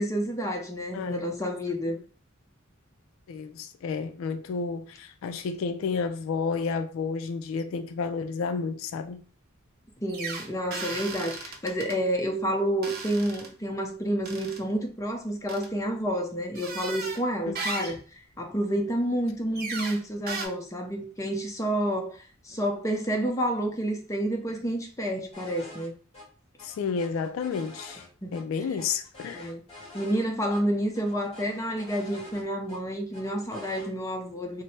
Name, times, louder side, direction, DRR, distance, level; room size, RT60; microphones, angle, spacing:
voice 1, 0.0-2.0 10.0-18.0 18.4-22.2 22.4-25.9 28.2-28.4 29.3-29.6 29.9-34.6, equal, 15° left, 0.6 m, -29 dB
voice 2, 0.9-1.3 3.3-9.2 17.5-17.9 26.6-28.0 28.3-29.5, left 5 dB, 70° left, 0.3 m, -31 dB
sound 1, 10.1-12.0 12.8-13.5 14.3-14.6 15.5-15.7 16.6-17.2 17.6-18.0 19.6-20.0 20.3-20.5, right 4 dB, 45° right, 0.6 m, -36 dB
sound 2, 25.3-25.9 26.1-26.2 26.6-28.4 28.8-30.2 30.5-30.6 30.9-32.8 33.1-33.9, left 2 dB, 30° left, 1.4 m, -47 dB
3.2 x 2.0 x 4.1 m
head